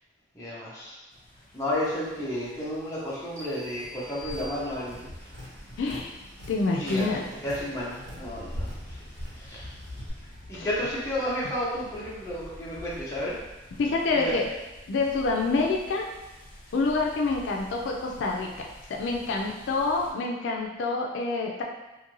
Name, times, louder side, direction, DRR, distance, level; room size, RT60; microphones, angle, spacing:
voice 1, 0.3-1.0 1.5-5.4 6.8-7.1 7.4-8.7 9.3-9.7 10.5-13.4 14.1-14.3, left 1 dB, 15° left, -8 dB, 0.7 m, -32 dB
sound 1, 1.1-20.1, left 1 dB, 45° left, 0.9 m, -45 dB
sound 2, 3.4-5.2, left 1 dB, 15° right, 0.4 m, -46 dB
Tap, 3.7-10.1, equal, 75° right, 1.2 m, -46 dB
voice 2, 5.8-6.1 6.5-7.2 10.5-10.7 13.8-14.4 14.9-16.0 16.7-21.6, left 3 dB, 75° left, 0 dB, 0.4 m, -27 dB
2.6 x 2.5 x 2.9 m, 1.0 s
head